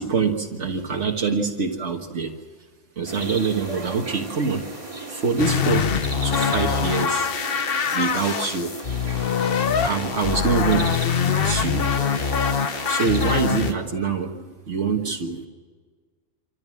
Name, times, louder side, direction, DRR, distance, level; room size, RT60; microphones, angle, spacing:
voice 1, 0.0-2.3 3.0-4.7 5.1-5.9 6.2-7.3 7.9-8.7 9.8-11.9 12.9-15.5, right 5 dB, 75° right, 2 dB, 1.8 m, -25 dB
sound 1, 3.1-13.7, right 2 dB, 25° right, 2.8 m, -36 dB
sound 2, 5.4-13.7, left 7 dB, 55° left, 1.1 m, -24 dB
26.5 x 14.5 x 7.6 m, 1.5 s
omnidirectional pair, 1.2 m